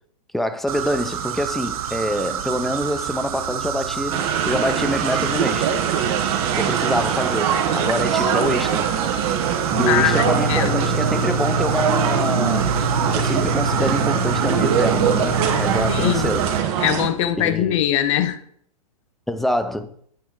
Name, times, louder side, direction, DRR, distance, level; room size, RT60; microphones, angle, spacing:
voice 1, 0.3-5.7 6.5-8.9 9.8-12.7 13.1-16.5 17.4-17.8 19.3-19.9, equal, ahead, 0.3 m, -25 dB
sound 1, 0.7-16.6, right 8 dB, 65° right, 0.9 m, -29 dB
sound 2, 4.1-17.1, right 8 dB, 50° right, 1.3 m, -23 dB
sound 3, 9.7-16.1, right 1 dB, 20° left, 1.9 m, -26 dB
voice 2, 9.9-10.9 15.9-16.4 16.8-18.4, left 11 dB, 55° left, 0.8 m, -22 dB
8.5 x 5.9 x 3.8 m
hypercardioid pair, 135°, 19 cm